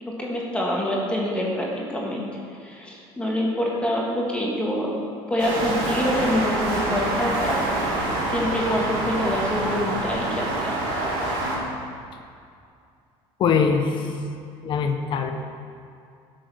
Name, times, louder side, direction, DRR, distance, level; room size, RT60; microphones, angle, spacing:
voice 1, 0.0-4.9 5.3-8.0 8.3-10.8, equal, 10° left, -3 dB, 1.8 m, -26 dB
sound 1, 5.4-11.6, right 2 dB, 90° right, 2.9 m, -26 dB
voice 2, 13.4-14.2 14.6-15.3, left 6 dB, 45° left, 5 dB, 1.0 m, -22 dB
11.5 x 6.3 x 6.2 m, 2.3 s
cardioid pair, 140°, 11 cm